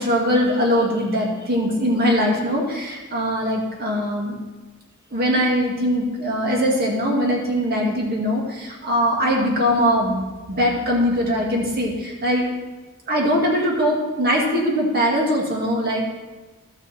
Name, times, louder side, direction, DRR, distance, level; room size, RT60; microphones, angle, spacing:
voice 1, 0.0-4.4 5.1-12.5 13.1-16.0, equal, 50° right, -2 dB, 2.2 m, -21 dB
14.0 x 6.1 x 4.3 m, 1.3 s
head